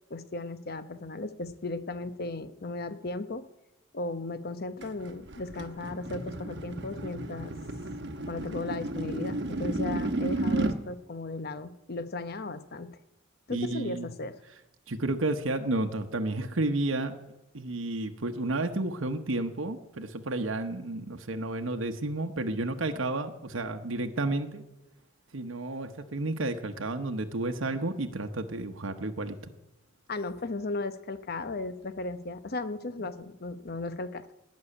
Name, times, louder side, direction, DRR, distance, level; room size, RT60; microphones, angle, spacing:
voice 1, 0.1-3.4 3.9-7.5 8.3-13.0 13.5-14.4 30.1-34.3, left 2 dB, 50° left, 12 dB, 0.9 m, -36 dB
sound 1, 4.8-10.8, right 2 dB, 60° right, 1.1 m, -33 dB
voice 2, 13.5-14.1 14.9-17.1 17.5-24.6 25.3-29.5, right 2 dB, 85° right, 5 dB, 1.0 m, -31 dB
18.0 x 6.4 x 9.9 m, 0.94 s
head